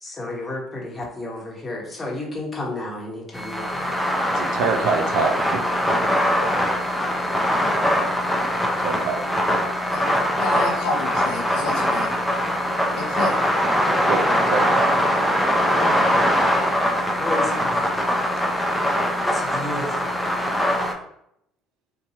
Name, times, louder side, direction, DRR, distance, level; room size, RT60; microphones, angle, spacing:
voice 1, 0.0-3.9 17.2-18.1 19.2-20.2, left 2 dB, 25° left, -2 dB, 1.0 m, -32 dB
sound 1, 3.3-20.9, equal, 5° left, 0.6 m, -22 dB
voice 2, 4.3-6.7 7.3-7.4 8.8-9.4 12.8-13.1 14.1-16.3, right 5 dB, 70° right, 5 dB, 0.4 m, -28 dB
voice 3, 10.4-12.2 12.9-13.4, left 2 dB, 75° left, 1 dB, 0.6 m, -29 dB
2.7 x 2.2 x 2.8 m, 0.76 s
hypercardioid pair, 60°, 0 cm